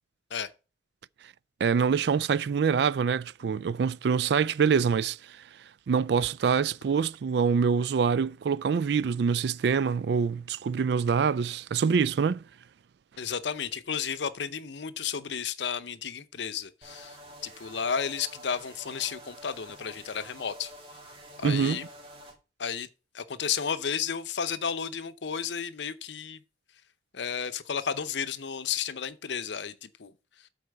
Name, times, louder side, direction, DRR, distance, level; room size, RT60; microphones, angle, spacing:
voice 1, 1.6-5.4 5.9-12.4 21.4-21.8, right 6 dB, 65° right, 0.3 m, -25 dB
voice 2, 13.2-17.2 17.4-20.7 21.4-21.9 22.6-22.9 23.1-26.4 27.1-30.1, left 7 dB, 75° left, 0.7 m, -32 dB
sound 1, 16.8-22.3, equal, 30° right, 2.1 m, -48 dB
8.2 x 4.2 x 6.5 m
head